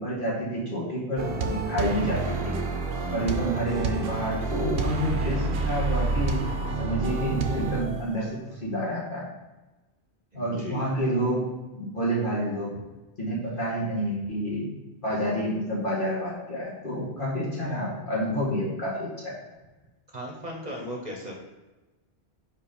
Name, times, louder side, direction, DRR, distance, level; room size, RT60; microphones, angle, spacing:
voice 1, 0.0-2.5 3.1-6.5 6.8-9.2 10.3-12.7 13.2-14.7 15.0-19.3, equal, 50° left, -6 dB, 2.2 m, -29 dB
sound 1, 1.2-8.3, right 3 dB, 60° right, 0.9 m, -29 dB
voice 2, 10.3-10.8 20.1-21.3, equal, 40° right, -1 dB, 1.1 m, -36 dB
4.9 x 4.6 x 5.3 m, 1.1 s
omnidirectional pair, 1.1 m